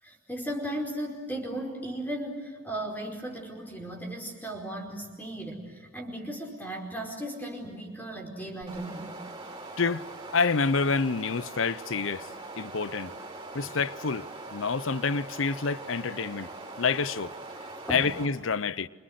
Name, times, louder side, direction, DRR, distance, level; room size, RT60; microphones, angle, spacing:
voice 1, 0.0-9.2 17.9-18.1, right 1 dB, 10° left, 4.8 m, -36 dB
sound 1, 8.6-18.3, right 2 dB, 20° right, 5.9 m, -42 dB
voice 2, 10.3-12.3 12.6-13.1 13.5-17.3 17.9-18.9, left 4 dB, 75° left, 0.7 m, -28 dB
27.5 x 27.0 x 8.0 m
head